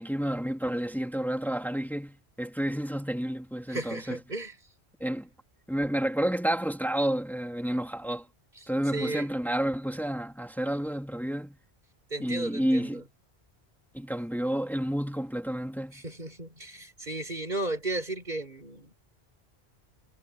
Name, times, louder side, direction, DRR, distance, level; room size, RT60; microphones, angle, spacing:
voice 1, 0.0-4.2 5.0-5.3 5.7-8.3 8.7-11.6 12.2-13.0 13.9-16.0, right 1 dB, ahead, 2.6 m, -30 dB
voice 2, 3.7-4.6 8.6-9.3 12.1-13.0 15.9-18.9, right 2 dB, 45° right, 5.4 m, -35 dB
omnidirectional pair, 1.1 m